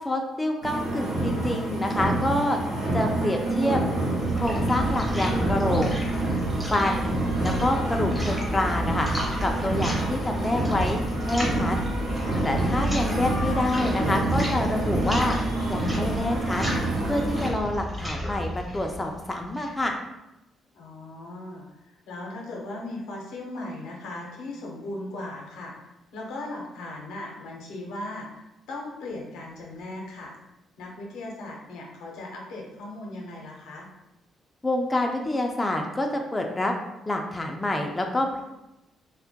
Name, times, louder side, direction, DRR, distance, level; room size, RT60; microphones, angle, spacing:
voice 1, 0.0-2.6 2.9-3.8 4.3-5.9 6.7-7.2 7.4-9.1 9.4-11.8 12.4-15.3 15.7-16.6 17.1-20.0 34.6-36.7 37.1-38.4, left 1 dB, 15° left, 2 dB, 0.3 m, -27 dB
sound 1, 0.6-17.5, right 2 dB, 80° right, 0.7 m, -27 dB
sound 2, 4.1-19.8, left 1 dB, 10° right, 0.7 m, -32 dB
voice 2, 20.7-30.4 30.8-33.9, left 2 dB, 90° left, -1 dB, 0.5 m, -38 dB
2.1 x 2.1 x 2.7 m, 0.92 s
cardioid pair, 90°, 0 cm